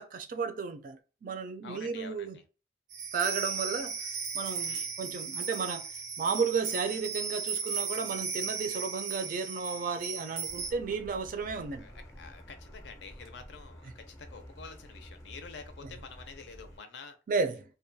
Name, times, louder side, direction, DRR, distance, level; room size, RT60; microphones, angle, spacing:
voice 1, 0.0-2.4 3.1-4.0 4.3-5.9 6.2-11.8 15.8-15.9 17.3-17.6, right 5 dB, 50° right, 0.3 m, -33 dB
voice 2, 1.6-2.4 4.6-4.9 11.8-17.2, left 5 dB, 75° left, 0.5 m, -48 dB
sound 1, 2.9-10.7, right 5 dB, 90° right, 0.6 m, -36 dB
Car, 10.5-16.8, equal, 20° left, 0.5 m, -50 dB
2.3 x 2.2 x 2.6 m
head